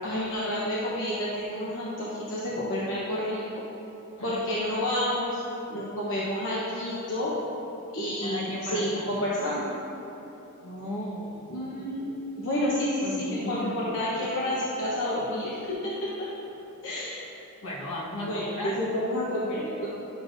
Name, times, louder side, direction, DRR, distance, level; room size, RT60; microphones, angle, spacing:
voice 1, 0.0-3.6 4.2-5.4 5.7-7.3 7.9-9.7 11.5-15.9 16.2-16.3 16.8-17.2 18.2-19.9, left 1 dB, 60° left, -7 dB, 1.1 m, -30 dB
voice 2, 8.2-9.2 10.6-11.4 13.0-13.8 17.6-18.8, equal, 80° left, -5 dB, 1.5 m, -35 dB
10.5 x 6.9 x 2.6 m, 3.0 s
head